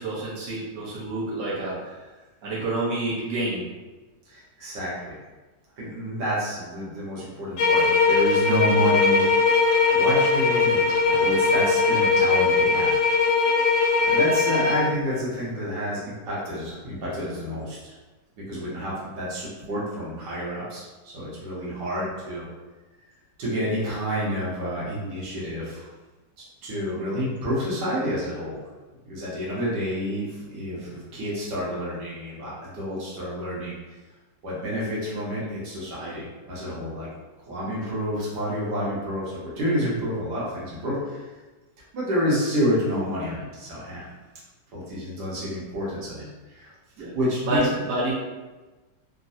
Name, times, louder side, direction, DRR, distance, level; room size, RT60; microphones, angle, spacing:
voice 1, 0.0-1.9 2.4-3.6 47.0-47.1 47.5-48.1, right 1 dB, 60° right, -7 dB, 1.2 m, -28 dB
voice 2, 4.3-5.1 5.8-9.6 9.9-12.9 14.0-17.9 18.5-22.5 23.4-25.9 26.6-28.6 29.0-33.8 34.4-37.1 37.5-41.2 41.9-44.1 44.7-46.7 47.1-47.7, equal, 85° right, -7 dB, 1.6 m, -29 dB
sound 1, 7.6-14.9, left 4 dB, 75° left, 1.0 m, -20 dB
3.6 x 2.0 x 2.6 m, 1.2 s
omnidirectional pair, 1.8 m